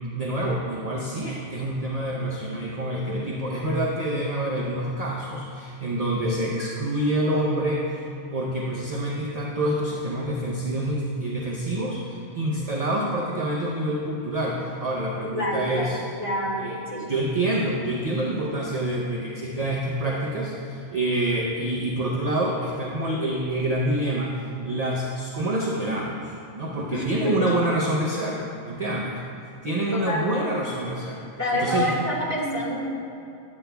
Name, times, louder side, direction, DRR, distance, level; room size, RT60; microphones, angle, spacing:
voice 1, 0.1-8.1 8.3-16.0 16.6-29.2 29.6-31.2 31.5-31.9, right 1 dB, 40° right, -4 dB, 0.6 m, -27 dB
voice 2, 15.3-15.9 16.2-16.6 16.9-17.0 26.9-27.3 29.9-30.4 31.4-32.9, left 1 dB, 10° left, -7 dB, 1.7 m, -27 dB
10.5 x 8.4 x 2.3 m, 2.6 s
omnidirectional pair, 1.5 m